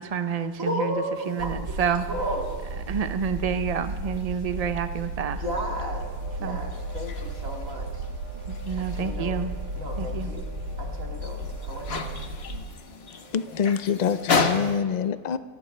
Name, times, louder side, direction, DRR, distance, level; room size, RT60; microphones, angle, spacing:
voice 1, 0.0-2.0 2.9-5.4 6.4-6.6 8.5-9.5 10.0-10.3, right 7 dB, 40° right, 10 dB, 0.6 m, -29 dB
voice 2, 0.6-2.6 5.4-6.0 6.4-7.9 8.9-9.3 9.8-10.4 10.8-12.2, equal, 70° right, 0 dB, 2.7 m, -33 dB
sound 1, 1.1-14.8, left 4 dB, 50° left, 1.2 m, -35 dB
sound 2, 1.4-12.6, right 1 dB, 85° right, 1.7 m, -34 dB
sound 3, 5.8-14.2, right 4 dB, 55° right, 4.7 m, -48 dB
voice 3, 13.3-15.4, left 7 dB, 70° left, 13 dB, 0.4 m, -25 dB
27.0 x 15.5 x 3.3 m, 1.4 s
omnidirectional pair, 1.5 m